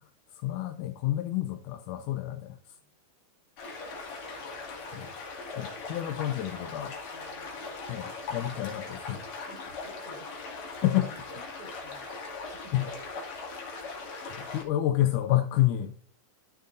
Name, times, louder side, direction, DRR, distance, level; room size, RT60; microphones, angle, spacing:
voice 1, 0.3-2.6 4.9-5.1 5.6-7.0 7.9-9.2 10.8-11.1 12.7-12.9 14.4-15.9, left 13 dB, 80° left, 8 dB, 2.0 m, -29 dB
sound 1, 3.6-14.6, left 3 dB, 55° left, 3.3 m, -40 dB
voice 2, 7.1-7.8 9.5-12.9 13.6-13.7, equal, 85° right, -2 dB, 0.7 m, -54 dB
14.5 x 6.6 x 2.6 m, 0.43 s
omnidirectional pair, 3.9 m